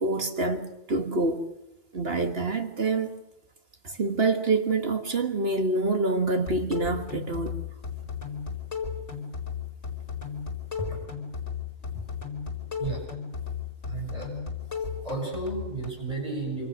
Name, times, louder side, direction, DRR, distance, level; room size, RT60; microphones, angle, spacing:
voice 1, 0.0-1.5 1.9-3.1 3.8-7.5, right 3 dB, 50° right, 6 dB, 1.9 m, -26 dB
sound 1, 6.3-15.9, left 6 dB, 65° left, 5.1 m, -35 dB
voice 2, 13.8-14.5 15.0-16.7, right 3 dB, 30° right, -1 dB, 7.5 m, -33 dB
26.5 x 26.0 x 6.6 m, 0.89 s
omnidirectional pair, 1.3 m